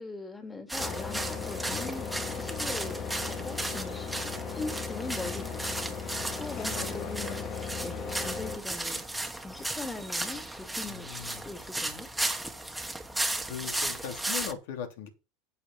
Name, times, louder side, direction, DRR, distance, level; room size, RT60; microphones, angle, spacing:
voice 1, 0.0-7.5 7.8-11.1 11.4-12.1, left 3 dB, 15° left, 3.0 m, -41 dB
sound 1, 0.7-14.5, right 1 dB, 5° right, 1.8 m, -35 dB
sound 2, 0.8-8.6, left 6 dB, 45° left, 2.3 m, -37 dB
voice 2, 6.7-7.4 10.8-11.4 13.5-15.1, left 8 dB, 75° left, 3.1 m, -40 dB
8.5 x 8.4 x 5.6 m
supercardioid pair, 115°, 0 cm